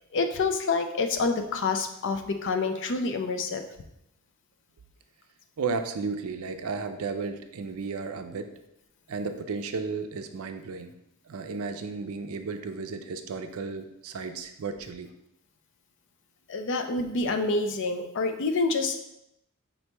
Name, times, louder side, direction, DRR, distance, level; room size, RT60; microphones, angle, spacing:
voice 1, 0.1-3.6 16.5-19.0, left 3 dB, 60° left, 6 dB, 0.5 m, -27 dB
voice 2, 5.6-8.5 9.1-10.9 11.2-15.1, right 4 dB, 70° right, 8 dB, 0.4 m, -34 dB
5.3 x 3.0 x 3.3 m, 0.82 s
head